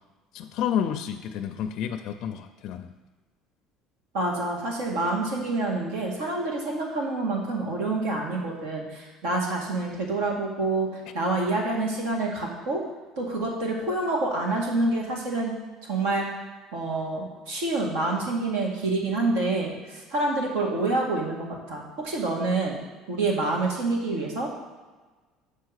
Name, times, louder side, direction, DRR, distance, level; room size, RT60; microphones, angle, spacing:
voice 1, 0.3-2.9, left 9 dB, 50° left, 6 dB, 0.4 m, -30 dB
voice 2, 4.1-10.9 11.1-12.8 13.2-15.5 15.8-16.2 16.7-22.8 23.1-24.6, right 2 dB, 90° right, -1 dB, 1.9 m, -27 dB
6.8 x 4.8 x 6.4 m, 1.3 s
cardioid pair, 175°, 0 cm